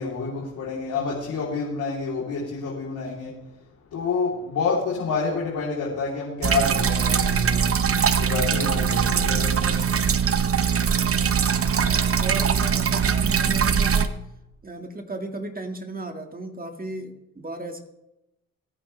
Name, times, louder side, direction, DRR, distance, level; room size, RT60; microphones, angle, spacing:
voice 1, 0.0-3.3 3.9-7.7 8.2-9.9, left 4 dB, 90° left, -5 dB, 3.4 m, -28 dB
sound 1, 6.4-14.1, right 7 dB, 50° right, 1.0 m, -22 dB
voice 2, 11.9-14.2 14.6-17.8, right 2 dB, 30° right, 4 dB, 1.9 m, -35 dB
24.5 x 9.6 x 3.3 m, 0.90 s
cardioid pair, 60°, 30 cm